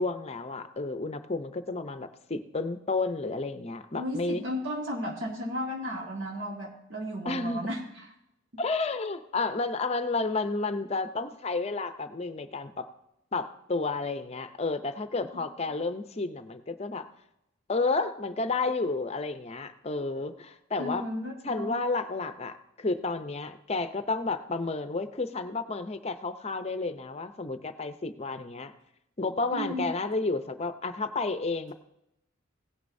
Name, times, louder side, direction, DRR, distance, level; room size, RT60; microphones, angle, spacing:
voice 1, 0.0-4.4 7.2-7.7 8.6-12.9 13.3-17.1 17.7-21.0 21.4-28.7 29.2-31.7, left 3 dB, 30° left, 10 dB, 0.6 m, -31 dB
voice 2, 3.9-7.8 20.8-21.7 29.5-29.9, equal, 70° right, -1 dB, 1.7 m, -34 dB
17.0 x 9.6 x 2.7 m, 0.84 s
head